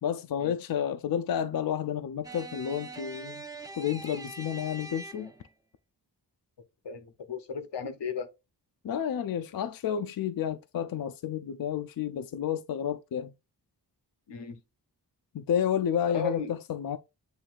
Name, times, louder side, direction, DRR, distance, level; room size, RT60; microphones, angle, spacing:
voice 1, 0.0-3.4 3.7-5.3 8.8-13.3 15.3-17.0, left 9 dB, 55° left, 0.5 m, -30 dB
sound 1, 2.2-5.5, right 3 dB, 10° right, 0.6 m, -43 dB
voice 2, 6.8-8.3 14.3-14.6 16.1-16.5, left 5 dB, 80° left, 0.8 m, -35 dB
7.7 x 2.6 x 2.4 m
cardioid pair, 50°, 41 cm